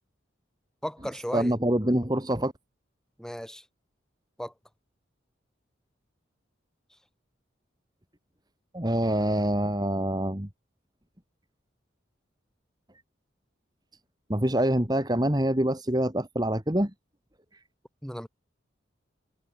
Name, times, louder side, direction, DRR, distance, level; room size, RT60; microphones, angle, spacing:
voice 1, 0.8-1.5 3.2-3.6 4.4-4.5 18.0-18.3, equal, 5° left, 3.7 m, -35 dB
voice 2, 1.3-2.5 8.7-10.5 14.3-16.9, right 1 dB, 20° right, 2.2 m, -25 dB
head